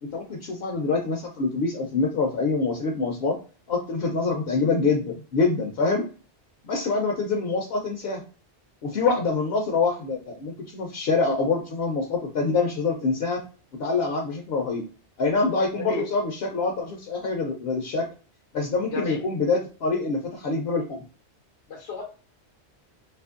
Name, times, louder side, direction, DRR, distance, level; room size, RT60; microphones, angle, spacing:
voice 1, 0.1-3.4 3.7-6.1 6.6-8.2 8.8-13.4 13.8-14.8 15.2-18.1 18.5-21.0, left 4 dB, 70° left, 1 dB, 0.8 m, -25 dB
voice 2, 21.7-22.0, left 4 dB, 85° left, -1 dB, 1.0 m, -31 dB
2.8 x 2.5 x 2.4 m, 0.37 s
omnidirectional pair, 1.1 m